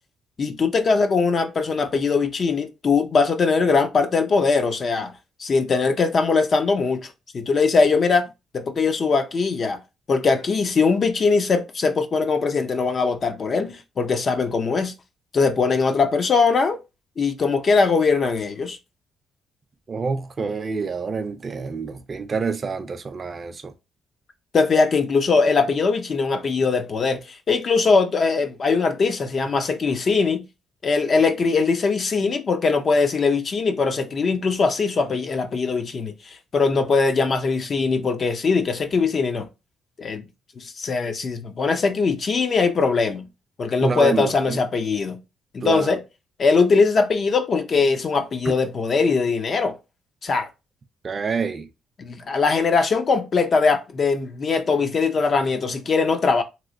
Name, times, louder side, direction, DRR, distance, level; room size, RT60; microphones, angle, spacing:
voice 1, 0.4-5.1 5.4-8.3 8.5-9.8 10.1-14.9 15.3-16.8 17.2-18.8 24.5-30.4 30.8-39.5 40.0-40.2 40.6-43.3 43.6-45.2 45.5-46.0 46.4-49.8 50.2-50.5 52.0-56.4, left 4 dB, 45° left, 0.5 m, -21 dB
voice 2, 19.9-23.7 43.8-44.6 45.6-46.0 48.5-48.6 51.0-51.7, right 5 dB, 40° right, 0.4 m, -27 dB
3.0 x 3.0 x 2.6 m
cardioid pair, 90°, 0 cm